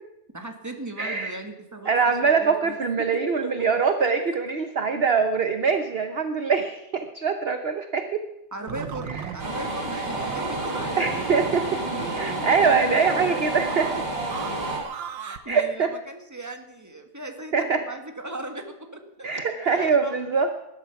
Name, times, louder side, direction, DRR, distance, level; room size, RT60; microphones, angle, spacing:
voice 1, 0.3-3.7 8.5-11.1 15.2-19.3 19.7-20.1, right 2 dB, 10° right, 4 dB, 1.7 m, -37 dB
voice 2, 1.0-1.4 1.9-8.2 9.1-9.2 11.0-11.8 12.2-13.9 15.5-15.9 17.5-17.8 19.2-20.5, right 5 dB, 45° right, 7 dB, 0.9 m, -23 dB
sound 1, 8.7-15.4, right 7 dB, 85° right, 1.8 m, -36 dB
sound 2, 9.4-14.8, right 1 dB, 60° right, 4.4 m, -30 dB
19.5 x 12.5 x 5.9 m, 0.91 s
omnidirectional pair, 2.0 m